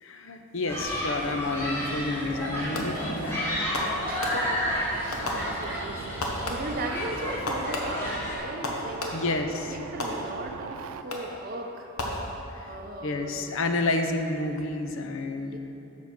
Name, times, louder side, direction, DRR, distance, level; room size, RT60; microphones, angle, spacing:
voice 1, 0.0-4.0 9.1-9.8 12.5-12.7 13.0-15.6, left 2 dB, 65° left, 6 dB, 0.6 m, -30 dB
Human group actions, 0.7-8.4, left 1 dB, 10° left, 1.6 m, -32 dB
sound 1, 1.6-11.0, right 7 dB, 80° right, 0.3 m, -41 dB
Fireworks, 2.7-3.2 3.7-4.7 5.1-5.9 6.2-6.9 7.5-9.4 10.0-10.6 11.1-11.5 12.0-12.7, left 1 dB, 85° left, 1.1 m, -34 dB
voice 2, 4.0-4.6 5.0-9.4 9.7-11.9 12.7-13.5 15.3-15.6, right 1 dB, 40° right, 2 dB, 0.6 m, -37 dB
7.2 x 5.6 x 5.9 m, 2.9 s
head